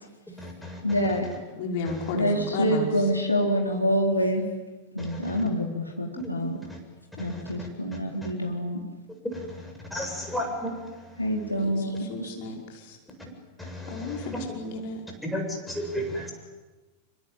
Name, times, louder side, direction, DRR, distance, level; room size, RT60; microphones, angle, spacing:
voice 1, 0.3-1.0 5.0-5.4 6.2-6.8 7.2-8.3 9.2-11.2 13.6-14.6 15.2-16.3, equal, 5° left, 2 dB, 7.5 m, -35 dB
voice 2, 0.8-1.3 2.1-4.4 4.9-6.6 7.2-8.8 11.2-12.3, equal, 85° left, 1 dB, 4.2 m, -26 dB
voice 3, 1.6-3.1 11.6-13.0 13.9-15.0, left 3 dB, 50° left, 1 dB, 5.3 m, -33 dB
26.0 x 24.5 x 9.2 m, 1.2 s
figure-of-eight pair, 90°, 0 cm